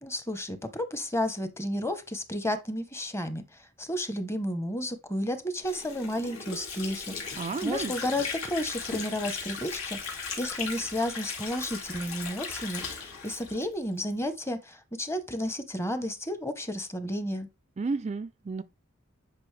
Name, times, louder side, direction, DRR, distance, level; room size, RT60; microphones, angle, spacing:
voice 1, 0.0-3.4 3.8-10.0 10.4-17.5, left 1 dB, 10° left, 0.9 m, -32 dB
Water / Sink (filling or washing), 5.6-14.2, left 5 dB, 80° left, 2.6 m, -37 dB
voice 2, 7.4-7.9 17.8-18.6, right 4 dB, 30° right, 0.4 m, -31 dB
9.7 x 5.3 x 3.3 m
head